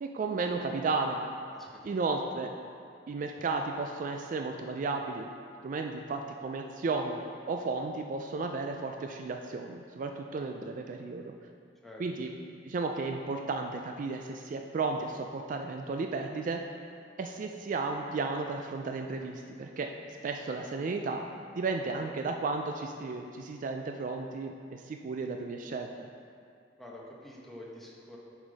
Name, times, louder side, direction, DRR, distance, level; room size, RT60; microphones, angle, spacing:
voice 1, 0.0-1.2 1.8-2.5 3.1-5.3 5.6-11.3 12.0-16.6 17.2-19.9 20.2-21.2 21.6-26.1, right 3 dB, 45° right, 4 dB, 0.3 m, -34 dB
voice 2, 1.5-1.9 11.8-12.0 26.8-28.2, left 1 dB, ahead, -4 dB, 0.9 m, -47 dB
7.1 x 5.0 x 4.0 m, 2.3 s
head